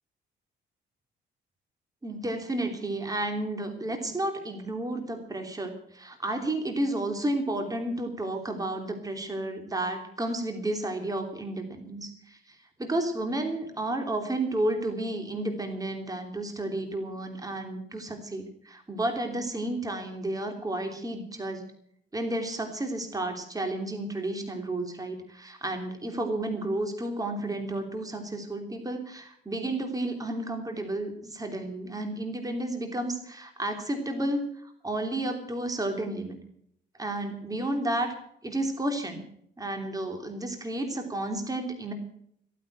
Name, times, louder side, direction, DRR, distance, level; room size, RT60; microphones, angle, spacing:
voice 1, 2.0-21.6 22.1-36.4 37.0-38.1 38.4-39.2 39.6-41.9, right 1 dB, 20° right, 4 dB, 3.1 m, -32 dB
16.0 x 9.5 x 7.6 m, 0.67 s
cardioid pair, 90°, 20 cm